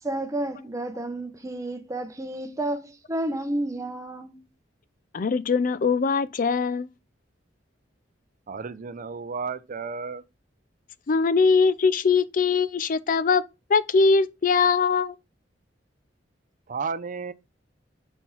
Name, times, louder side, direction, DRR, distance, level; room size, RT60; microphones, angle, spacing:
voice 1, 0.0-4.4, right 1 dB, 20° right, 0.8 m, -31 dB
voice 2, 5.1-6.9 11.1-13.4 13.7-15.1, left 4 dB, 50° left, 0.4 m, -21 dB
voice 3, 8.5-10.2 16.7-17.3, right 5 dB, 45° right, 0.5 m, -32 dB
4.5 x 4.4 x 5.5 m
head